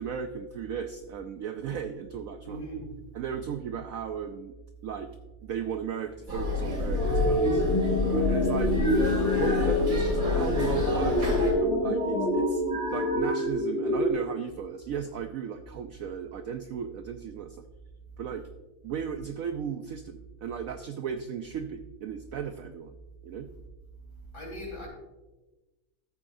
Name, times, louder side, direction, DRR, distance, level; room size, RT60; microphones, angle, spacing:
voice 1, 0.0-2.6 3.1-4.5 4.8-5.1 5.4-7.6 8.1-8.7 9.4-17.6 18.2-18.4 18.8-22.9 23.2-23.5, right 7 dB, 75° right, 7 dB, 0.7 m, -36 dB
voice 2, 2.4-2.9 24.2-24.9, right 1 dB, 60° left, -2 dB, 4.2 m, -39 dB
sound 1, 6.3-11.5, left 2 dB, 45° right, 2.8 m, -29 dB
sound 2, 7.0-14.1, left 1 dB, 5° left, 1.8 m, -26 dB
14.0 x 8.4 x 2.6 m, 1.1 s
omnidirectional pair, 2.0 m